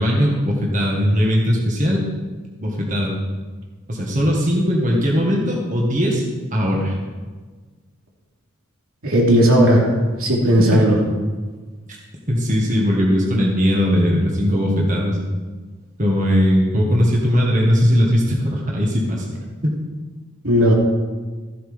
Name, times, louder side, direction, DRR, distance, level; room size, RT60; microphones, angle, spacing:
voice 1, 0.0-2.0 2.6-3.1 3.9-6.2 6.5-7.0 10.6-10.8 12.3-15.2 16.0-19.3, equal, 35° right, -2 dB, 1.7 m, -19 dB
voice 2, 9.0-9.9 10.2-11.0 20.4-20.7, equal, 85° right, -2 dB, 2.9 m, -15 dB
14.5 x 7.8 x 5.1 m, 1.4 s
head